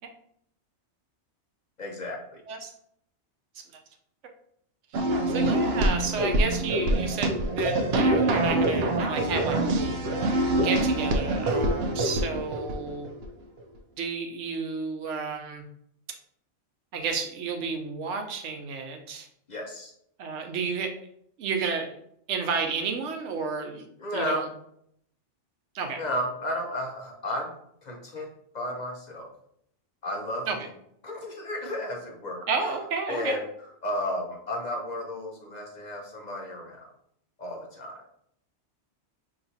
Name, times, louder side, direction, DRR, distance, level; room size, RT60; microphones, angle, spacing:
voice 1, 1.8-2.4 19.5-19.9 24.0-24.5 26.0-27.5 27.8-29.3 30.0-30.7 31.0-32.8 33.1-33.5 33.8-36.9 37.4-38.0, left 1 dB, 50° left, 0 dB, 0.6 m, -33 dB
sound 1, 4.9-13.2, right 1 dB, 65° right, 0.8 m, -25 dB
voice 2, 4.9-9.9 10.5-13.1 14.0-15.6 16.9-19.3 20.2-20.9 21.4-22.0 22.3-23.9 24.1-24.4 25.7-26.0 30.5-30.6 32.5-33.4, right 5 dB, 90° right, 5 dB, 1.0 m, -31 dB
5.7 x 2.9 x 2.7 m, 0.72 s
omnidirectional pair, 1.2 m